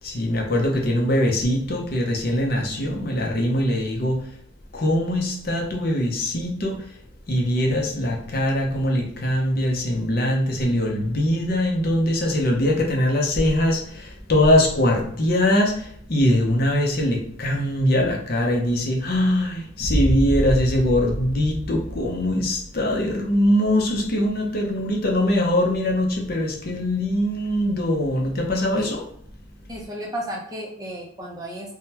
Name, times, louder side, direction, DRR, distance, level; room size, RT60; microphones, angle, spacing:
voice 1, 0.0-4.3 4.7-6.9 7.3-29.0, left 1 dB, 45° left, 0 dB, 0.6 m, -22 dB
Boom, 19.8-22.8, equal, 5° left, 0.8 m, -27 dB
voice 2, 29.7-31.7, equal, 20° right, -2 dB, 0.5 m, -33 dB
3.6 x 2.1 x 2.8 m, 0.65 s
head